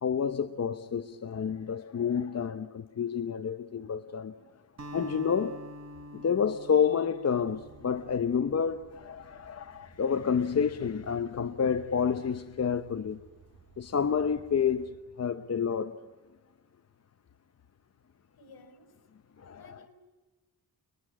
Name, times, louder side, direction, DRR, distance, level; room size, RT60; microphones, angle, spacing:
voice 1, 0.0-4.3 4.9-5.6 6.1-13.2 13.8-16.0 19.4-19.9, left 7 dB, 40° left, 0.8 m, -29 dB
Acoustic guitar, 4.8-9.3, equal, 45° right, 3.7 m, -46 dB
sound 1, 7.4-14.9, right 5 dB, 60° right, 6.7 m, -59 dB
voice 2, 18.4-18.9 19.5-19.9, left 3 dB, 70° left, 5.5 m, -54 dB
29.5 x 21.0 x 8.7 m
wide cardioid pair, 140°, 38 cm